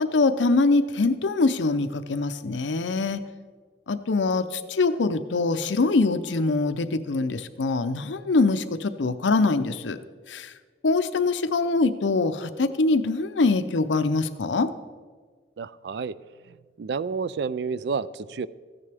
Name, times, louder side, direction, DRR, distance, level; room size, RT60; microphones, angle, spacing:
voice 1, 0.0-3.2 3.9-10.0 10.3-10.5 10.8-14.7, left 3 dB, 85° left, 11 dB, 0.6 m, -23 dB
voice 2, 15.6-16.2 16.8-18.5, right 5 dB, 70° right, 17 dB, 0.4 m, -30 dB
14.5 x 9.7 x 3.4 m, 1.5 s
head